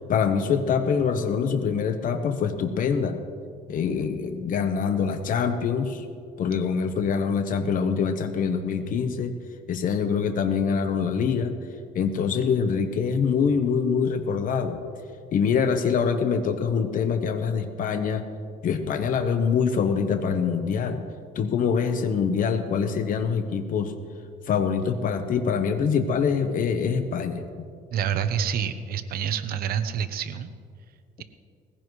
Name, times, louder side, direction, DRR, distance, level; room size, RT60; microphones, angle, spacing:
voice 1, 0.1-3.2 3.7-6.0 6.4-9.3 9.7-11.6 11.9-14.8 15.3-18.3 18.6-21.0 21.3-23.9 24.5-27.4, left 6 dB, 55° left, 7 dB, 1.0 m, -24 dB
voice 2, 27.9-30.5, right 8 dB, 65° right, 11 dB, 0.9 m, -27 dB
20.0 x 15.5 x 3.2 m, 2.2 s
cardioid pair, 110°, 17 cm